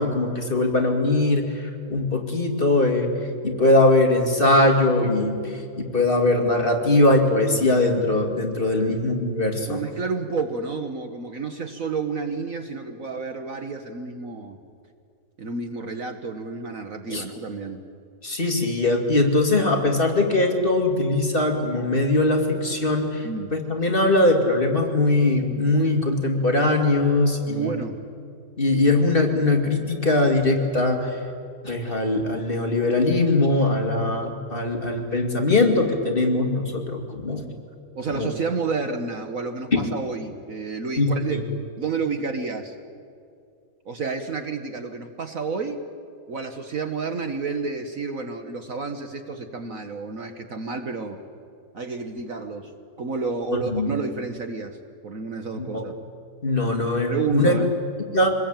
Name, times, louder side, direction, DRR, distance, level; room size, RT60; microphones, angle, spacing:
voice 1, 0.0-3.1 3.4-9.8 17.1-17.2 18.2-27.8 28.6-31.2 31.6-37.5 38.1-38.3 39.7-39.8 41.0-41.4 53.7-54.0 55.6-55.9 56.4-57.6 58.1-58.3, left 2 dB, 30° left, 2 dB, 2.5 m, -21 dB
voice 2, 8.7-9.0 9.7-14.6 15.4-17.8 23.2-23.5 27.5-28.0 38.0-41.4 41.8-42.7 43.9-45.8 46.3-51.2 51.7-52.7 53.0-54.8 55.0-55.9 57.1-57.7, right 4 dB, 50° right, 7 dB, 1.5 m, -30 dB
25.0 x 20.5 x 8.9 m, 2.3 s
omnidirectional pair, 2.0 m